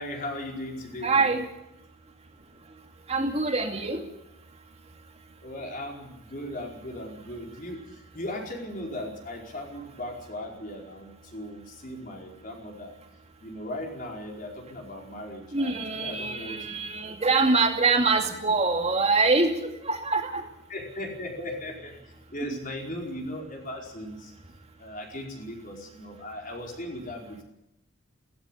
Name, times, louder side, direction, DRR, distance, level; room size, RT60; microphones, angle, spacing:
voice 1, 0.0-1.3 5.4-12.9 13.4-16.8 20.7-24.3 24.8-27.4, left 1 dB, 40° left, 0 dB, 4.8 m, -38 dB
voice 2, 1.0-1.4 3.1-4.0 15.5-20.5 22.5-22.6, right 3 dB, 30° right, 4 dB, 2.5 m, -24 dB
17.0 x 16.0 x 9.9 m, 0.86 s
head